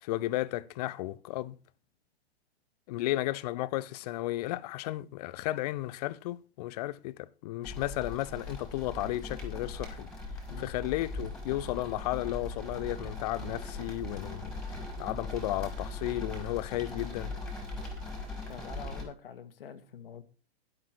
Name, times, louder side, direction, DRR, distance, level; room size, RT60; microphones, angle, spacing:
voice 1, 0.0-1.6 2.9-10.1 10.6-14.6 15.0-17.3, left 16 dB, 35° left, 0.7 m, -34 dB
sound 1, 7.6-19.0, left 2 dB, ahead, 4.6 m, -40 dB
voice 2, 18.5-20.2, left 7 dB, 60° left, 1.9 m, -45 dB
12.5 x 12.0 x 4.6 m
figure-of-eight pair, 110°, 33 cm